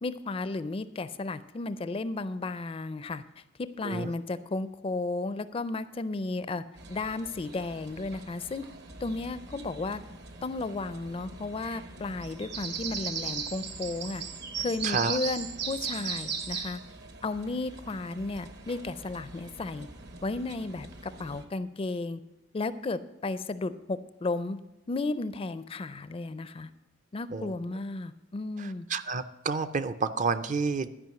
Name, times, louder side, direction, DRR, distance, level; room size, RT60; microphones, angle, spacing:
voice 1, 0.0-3.2 3.6-6.6 6.9-8.7 9.0-10.0 10.4-14.2 14.6-16.8 17.2-19.9 20.2-22.2 22.5-24.6 24.9-26.7 27.1-28.9, left 3 dB, 30° left, 14 dB, 0.4 m, -34 dB
sound 1, 6.8-21.4, right 5 dB, 60° right, 1.0 m, -39 dB
voice 2, 14.8-15.2 27.3-27.5 28.6-30.9, right 4 dB, 40° right, 12 dB, 0.5 m, -30 dB
12.5 x 5.3 x 7.7 m, 0.94 s
head